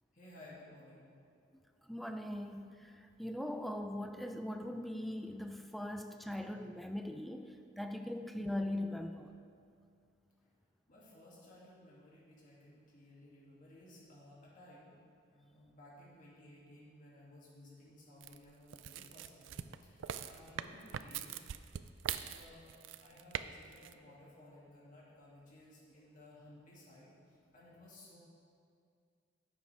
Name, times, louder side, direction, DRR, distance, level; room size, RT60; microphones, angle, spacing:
voice 1, 0.1-1.3 10.4-10.5 10.9-15.0 15.3-21.4 22.1-28.2, left 1 dB, 45° left, -6 dB, 2.3 m, -58 dB
voice 2, 1.9-9.3, left 1 dB, ahead, 6 dB, 0.4 m, -40 dB
sound 1, 18.2-23.4 23.7-23.9, right 9 dB, 85° right, 0.4 m, -42 dB
11.0 x 8.0 x 3.4 m, 2.3 s
head